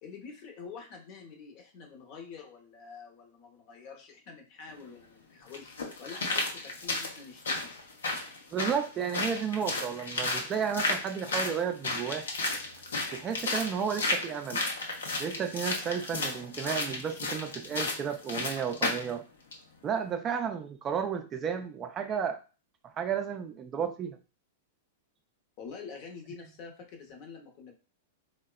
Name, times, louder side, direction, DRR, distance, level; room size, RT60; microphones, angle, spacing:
voice 1, 0.0-7.7 25.6-27.7, left 5 dB, 50° left, 3 dB, 0.8 m, -47 dB
sound 1, 4.7-4.8 5.5-19.1 19.5-19.6, left 3 dB, 90° left, 0.7 m, -33 dB
voice 2, 8.5-12.3 13.1-14.6 15.2-19.2 19.8-22.4 23.0-24.2, right 7 dB, 25° right, 7 dB, 0.3 m, -32 dB
3.5 x 2.1 x 2.3 m, 0.34 s
hypercardioid pair, 125°, 0 cm